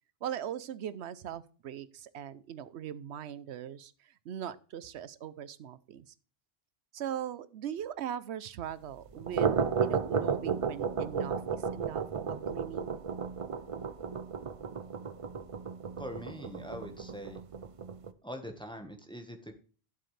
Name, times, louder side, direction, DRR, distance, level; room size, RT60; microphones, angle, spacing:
voice 1, 0.2-6.1 6.9-13.0, right 10 dB, 90° right, 16 dB, 0.9 m, -40 dB
sound 1, 9.1-18.1, right 6 dB, 40° right, 0.5 m, -33 dB
voice 2, 16.0-17.4 18.2-19.5, equal, 5° left, 5 dB, 1.2 m, -43 dB
12.0 x 7.7 x 3.2 m, 0.38 s
omnidirectional pair, 1.1 m